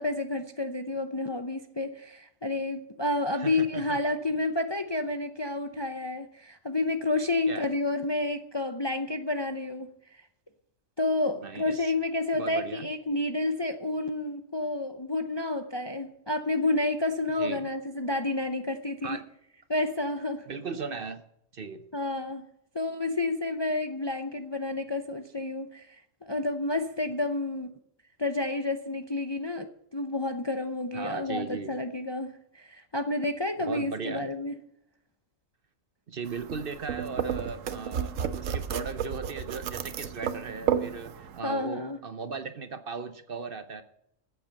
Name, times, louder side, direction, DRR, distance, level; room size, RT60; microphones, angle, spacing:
voice 1, 0.0-9.9 11.0-19.2 19.7-20.5 21.9-22.5 22.7-27.7 28.2-34.5 41.4-42.0, left 2 dB, 25° left, 8 dB, 0.6 m, -30 dB
voice 2, 3.3-4.0 7.5-7.7 11.4-11.9 12.3-12.9 17.4-17.7 19.0-19.3 20.5-21.2 21.5-21.8 30.9-31.8 33.6-34.3 36.1-43.8, right 5 dB, 50° right, 11 dB, 1.0 m, -37 dB
sound 1, 36.3-41.4, right 8 dB, 80° right, 1.2 m, -32 dB
14.0 x 8.1 x 7.7 m, 0.75 s
omnidirectional pair, 1.3 m